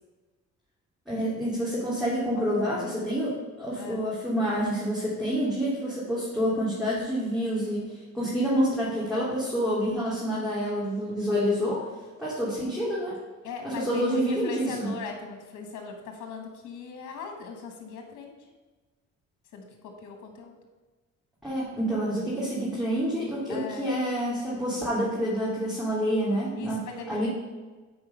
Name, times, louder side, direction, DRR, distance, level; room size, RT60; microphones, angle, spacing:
voice 1, 1.1-11.9 12.2-13.1 13.6-14.9 21.4-27.3, equal, ahead, -9 dB, 2.8 m, -28 dB
voice 2, 2.3-2.9 3.8-4.0 13.4-18.5 19.5-20.6 23.5-23.9 26.6-27.3, left 5 dB, 80° left, 4 dB, 1.5 m, -39 dB
8.6 x 4.6 x 5.7 m, 1.3 s
cardioid pair, 90°, 30 cm